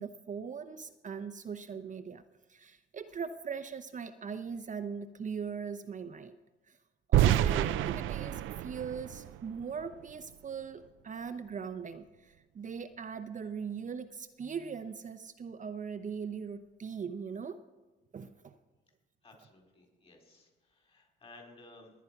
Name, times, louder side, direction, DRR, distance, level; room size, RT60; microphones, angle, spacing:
voice 1, 0.0-2.2 2.5-6.4 6.7-6.8 7.1-17.6 18.1-18.6, right 6 dB, 40° right, 9 dB, 0.7 m, -40 dB
sound 1, 7.1-10.1, right 12 dB, 85° right, 0.5 m, -28 dB
voice 2, 19.2-21.9, left 2 dB, 30° left, 1 dB, 4.4 m, -56 dB
20.0 x 9.3 x 5.9 m, 1.2 s
cardioid pair, 90°, 20 cm